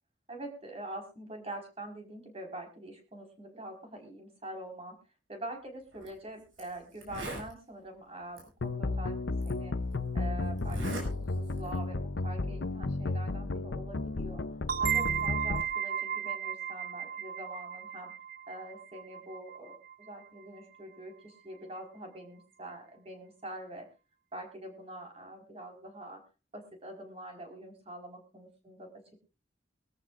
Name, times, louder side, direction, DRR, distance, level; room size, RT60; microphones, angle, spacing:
voice 1, 0.3-5.0 5.3-9.7 10.1-14.4 14.8-18.1 18.5-23.9 24.3-26.2 26.5-28.9, right 1 dB, 30° right, 3 dB, 4.6 m, -45 dB
Zipper (clothing), 5.9-6.1 6.6-6.7 6.9-7.5 8.4-8.5 9.4-9.5 10.6-11.1 11.4-11.8, right 1 dB, 85° right, 7.0 m, -38 dB
sound 1, 8.6-15.6, left 2 dB, 65° left, 0.7 m, -33 dB
sound 2, 14.7-20.1, right 9 dB, 50° right, 0.6 m, -34 dB
23.0 x 13.5 x 2.5 m, 0.30 s
head